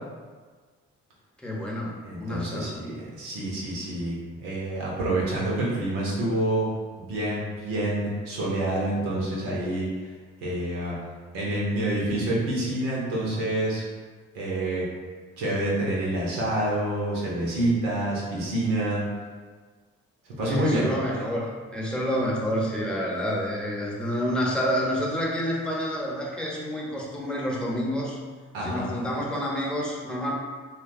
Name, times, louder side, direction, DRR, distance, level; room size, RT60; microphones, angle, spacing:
voice 1, 1.4-3.0 20.4-28.2 28.6-30.3, equal, 5° left, -4 dB, 0.8 m, -29 dB
voice 2, 2.0-6.7 7.0-9.9 10.4-11.0 11.3-13.8 14.3-14.8 15.4-19.0 20.4-20.9 28.5-28.9, right 1 dB, 85° right, -5 dB, 0.7 m, -27 dB
2.8 x 2.3 x 2.5 m, 1.5 s
hypercardioid pair, 45°, 33 cm